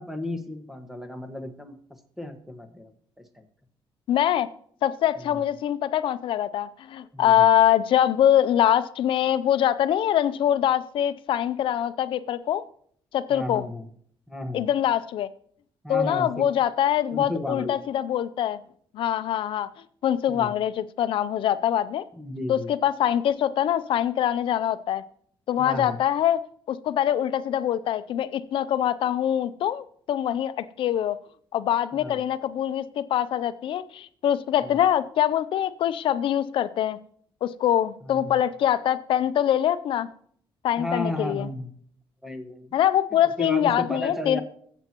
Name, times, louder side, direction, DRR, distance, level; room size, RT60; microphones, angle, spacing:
voice 1, 0.0-1.7 2.2-2.9 3.3-3.4 5.2-5.4 7.1-7.5 13.3-13.9 14.3-14.6 15.8-16.6 17.1-17.7 20.3-20.5 22.2-22.7 25.6-26.0 31.9-32.2 34.6-34.8 38.0-38.4 40.8-41.7 42.2-42.7 43.4-44.4, left 1 dB, 5° right, 6 dB, 1.6 m, -33 dB
voice 2, 4.1-4.5 4.8-12.6 13.1-13.6 14.5-15.3 15.9-18.6 18.9-19.7 20.0-22.0 22.5-25.0 25.5-31.2 31.5-37.0 37.4-40.1 40.6-41.5 42.7-44.4, left 10 dB, 70° left, 14 dB, 0.6 m, -24 dB
22.5 x 7.8 x 3.0 m, 0.63 s
cardioid pair, 100°, 9 cm